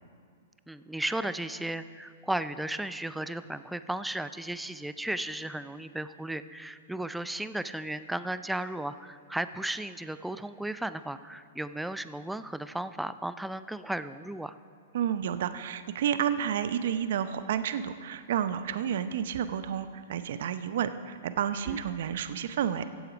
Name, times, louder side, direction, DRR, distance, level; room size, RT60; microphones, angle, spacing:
voice 1, 0.7-14.5 21.7-21.8, right 1 dB, 5° right, 12 dB, 0.4 m, -35 dB
voice 2, 14.9-22.8, right 9 dB, 65° right, 12 dB, 0.7 m, -30 dB
15.5 x 8.0 x 5.0 m, 2.1 s
hypercardioid pair, 125°, 0 cm